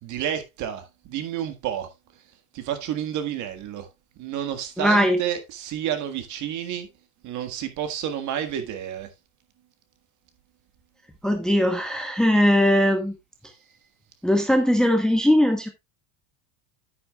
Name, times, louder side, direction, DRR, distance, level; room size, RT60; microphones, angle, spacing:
voice 1, 0.0-1.9 2.5-3.9 4.2-6.9 7.2-9.1, right 10 dB, 45° right, 1.7 m, -30 dB
voice 2, 4.8-5.2 11.2-13.1 14.2-15.7, equal, ahead, 1.0 m, -20 dB
9.5 x 9.4 x 2.3 m
supercardioid pair, 140°, 43 cm